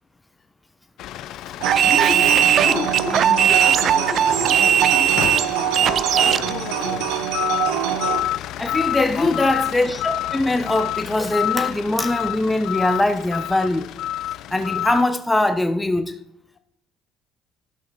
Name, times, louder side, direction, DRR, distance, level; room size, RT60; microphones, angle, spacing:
sound 1, 1.0-15.0, left 13 dB, 70° left, 0.3 m, -29 dB
sound 2, 1.6-6.5, right 9 dB, 55° right, 0.4 m, -18 dB
sound 3, 1.6-8.2, right 10 dB, 90° right, 0.8 m, -25 dB
voice 1, 1.9-7.2 9.1-9.5, left 5 dB, 45° left, 0.9 m, -32 dB
voice 2, 8.6-13.9 14.5-16.1, left 1 dB, 10° left, 1.1 m, -22 dB
12.0 x 5.7 x 4.4 m
supercardioid pair, 75°, 0 cm